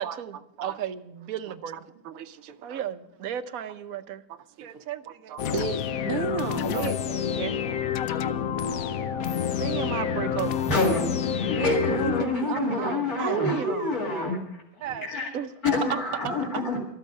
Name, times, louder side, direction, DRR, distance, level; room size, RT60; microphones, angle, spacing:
voice 1, 0.0-1.8 2.6-4.2 4.6-5.5 6.7-7.9 9.6-10.7 13.2-13.9 14.8-15.1 15.3-15.5 15.9-16.3, right 9 dB, 60° right, 0.9 m, -33 dB
voice 2, 2.0-2.8 4.3-7.2 8.9-9.0 9.3-9.4 11.5-13.1, right 8 dB, 90° right, 1.7 m, -34 dB
sound 1, 5.4-12.2, left 8 dB, 75° left, 0.8 m, -28 dB
voice 3, 10.7-15.3 15.6-16.8, left 2 dB, 45° left, 2.6 m, -28 dB
13.5 x 13.0 x 5.4 m
omnidirectional pair, 2.3 m